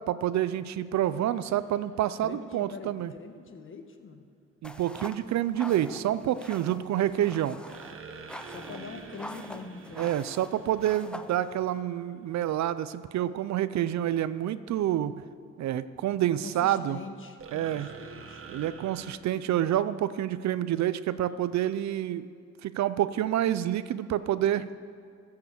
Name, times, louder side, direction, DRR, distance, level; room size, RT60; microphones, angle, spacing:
voice 1, 0.1-3.1 4.6-7.6 10.0-15.2 15.6-17.0 17.5-17.9 18.5-22.3 22.6-24.7, right 12 dB, 65° right, 15 dB, 0.5 m, -28 dB
sound 1, 1.3-2.0 7.7-11.8 17.4-19.2, right 5 dB, 45° right, 1.2 m, -47 dB
voice 2, 2.2-4.2 8.4-10.1 16.4-18.4, left 4 dB, 45° left, 7 dB, 1.3 m, -44 dB
sound 2, 4.6-11.8, left 1 dB, 5° left, 0.5 m, -45 dB
14.5 x 6.7 x 7.6 m, 2.4 s
cardioid pair, 90°, 30 cm